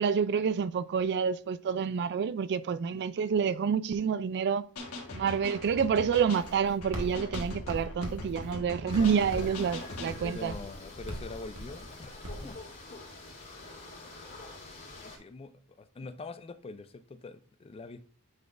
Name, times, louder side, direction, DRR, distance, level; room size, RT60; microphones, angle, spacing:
voice 1, 0.0-4.7 5.1-10.5, right 6 dB, 50° right, 0.3 m, -28 dB
sound 1, 4.8-10.2, left 2 dB, 75° left, 1.5 m, -41 dB
Writing, 6.3-12.6, equal, 85° right, 1.5 m, -42 dB
sound 2, 8.9-15.2, left 2 dB, 45° left, 2.8 m, -46 dB
voice 2, 10.2-12.6 12.9-13.0 15.0-18.1, left 3 dB, 25° left, 0.4 m, -44 dB
9.5 x 4.1 x 2.5 m
head